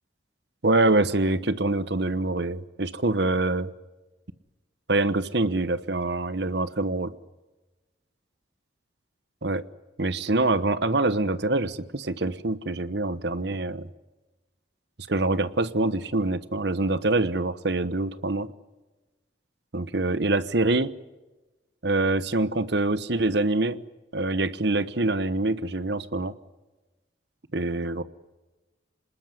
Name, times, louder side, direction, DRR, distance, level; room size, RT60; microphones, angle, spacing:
voice 1, 0.6-3.7 4.9-7.1 9.4-9.6 10.0-13.9 15.1-18.5 19.7-20.9 21.8-23.8 24.1-26.3 27.5-28.0, right 2 dB, 60° right, 14 dB, 1.1 m, -25 dB
26.5 x 20.0 x 9.2 m, 1.1 s
head